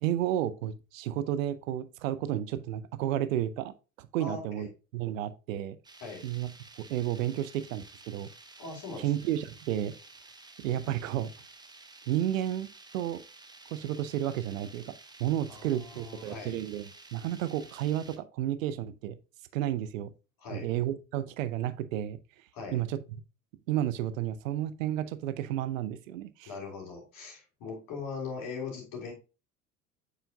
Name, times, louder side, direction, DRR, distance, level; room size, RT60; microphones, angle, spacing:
voice 1, 0.0-4.7 4.9-5.8 6.2-6.5 6.8-8.3 9.0-9.9 10.6-11.3 12.1-12.7 12.9-13.2 13.7-19.2 19.5-20.1 20.5-22.2 22.7-23.0 23.7-26.5, right 12 dB, 70° right, 0.7 m, -32 dB
voice 2, 4.2-4.7 6.0-6.2 8.6-9.1 15.5-16.6 20.4-20.7 22.5-22.8 26.4-29.1, left 4 dB, 50° left, 3.2 m, -40 dB
sound 1, 5.8-18.2, right 3 dB, 10° right, 1.0 m, -52 dB
7.8 x 5.6 x 2.3 m
figure-of-eight pair, 70°, 41 cm